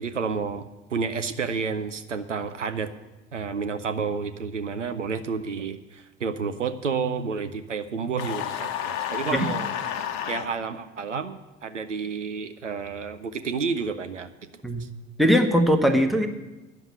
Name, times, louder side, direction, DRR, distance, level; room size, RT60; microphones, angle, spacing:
voice 1, 0.0-2.9 3.3-9.7 10.3-14.9, right 5 dB, 85° right, 11 dB, 0.5 m, -30 dB
sound 1, 8.2-10.5, left 10 dB, 55° left, 1.0 m, -30 dB
voice 2, 15.2-16.3, equal, ahead, 4 dB, 1.1 m, -20 dB
10.0 x 7.1 x 9.0 m, 1.1 s
figure-of-eight pair, 60°, 36 cm